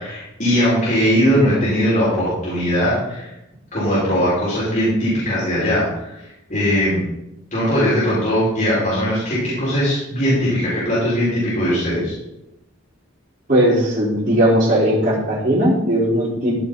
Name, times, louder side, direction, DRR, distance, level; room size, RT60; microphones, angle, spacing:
voice 1, 0.0-3.3 3.7-6.1 6.5-7.0 7.5-12.1, equal, 40° left, -10 dB, 5.7 m, -19 dB
voice 2, 13.5-16.6, right 1 dB, 40° right, -8 dB, 5.0 m, -17 dB
15.5 x 6.8 x 5.6 m, 0.88 s
head